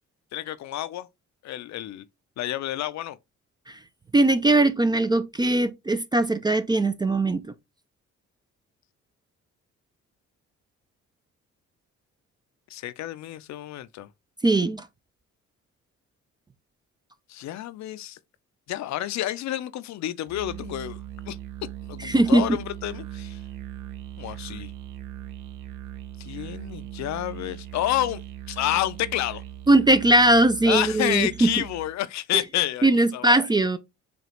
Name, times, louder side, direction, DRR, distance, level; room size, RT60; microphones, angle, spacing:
voice 1, 0.3-1.1 1.4-2.0 2.4-3.2 12.7-14.1 17.3-18.2 18.7-21.0 21.3-21.4 21.9-23.4 24.2-24.7 26.2-28.2 28.5-29.4 30.7-33.4, left 13 dB, 65° left, 0.5 m, -29 dB
voice 2, 4.1-7.4 14.4-14.8 22.0-22.5 29.7-31.5 32.8-33.8, right 2 dB, 15° right, 0.3 m, -20 dB
Musical instrument, 20.3-32.0, right 13 dB, 90° right, 0.7 m, -39 dB
5.0 x 2.3 x 2.9 m
cardioid pair, 90°, 30 cm